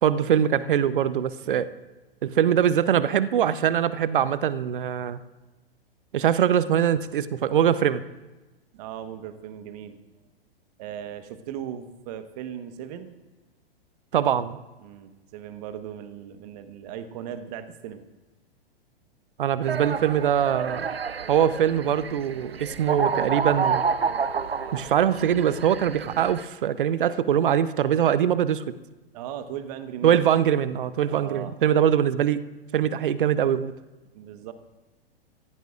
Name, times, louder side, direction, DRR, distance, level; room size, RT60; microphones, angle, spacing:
voice 1, 0.0-1.7 2.2-5.2 6.1-8.0 14.1-14.6 19.4-20.9 21.3-23.8 24.7-28.7 30.0-32.4 32.7-33.7, right 9 dB, 60° right, 15 dB, 0.8 m, -22 dB
voice 2, 1.4-1.8 8.7-10.0 10.8-13.1 14.8-18.0 29.1-30.2 31.0-31.6 34.1-34.5, right 9 dB, 40° right, 10 dB, 1.3 m, -38 dB
sound 1, 19.6-26.4, right 6 dB, 85° right, 0.6 m, -29 dB
26.0 x 15.5 x 2.5 m, 1.1 s
figure-of-eight pair, 105°, 30 cm